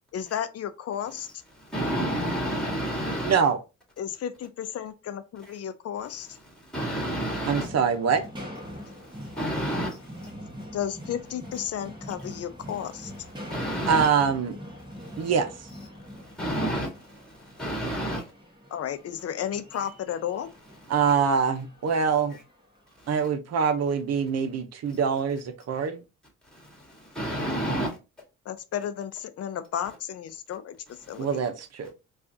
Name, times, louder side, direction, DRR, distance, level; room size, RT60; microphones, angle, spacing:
voice 1, 0.1-1.4 4.0-6.4 10.7-13.1 18.7-20.5 28.4-31.3, left 9 dB, 55° left, 0.6 m, -33 dB
voice 2, 1.6-3.4 6.7-7.7 8.8-10.3 13.4-14.1 15.0-15.3 16.1-18.2 26.5-28.0 31.1-31.3, right 1 dB, ahead, 1.9 m, -30 dB
voice 3, 3.2-3.6 7.5-8.2 13.9-14.6 15.2-15.7 20.9-22.4 23.1-26.0 31.2-31.9, right 6 dB, 60° right, 0.8 m, -24 dB
sound 1, 7.6-22.9, equal, 15° right, 1.4 m, -43 dB
4.7 x 2.5 x 2.7 m
cardioid pair, 90°, 30 cm